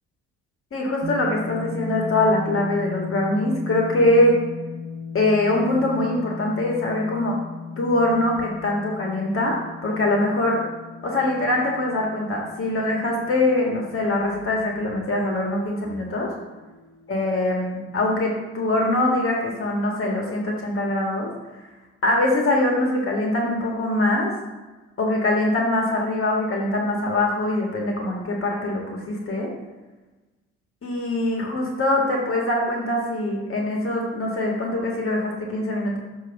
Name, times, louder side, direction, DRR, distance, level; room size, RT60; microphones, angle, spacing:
voice 1, 0.7-4.4 5.1-7.4 7.8-10.6 11.0-16.3 17.1-21.3 22.0-24.3 25.0-29.5 30.8-36.0, left 1 dB, 40° left, -1 dB, 1.8 m, -23 dB
sound 1, 1.0-17.0, left 4 dB, 50° right, 1.2 m, -37 dB
7.2 x 3.2 x 5.9 m, 1.2 s
hypercardioid pair, 60°, 32 cm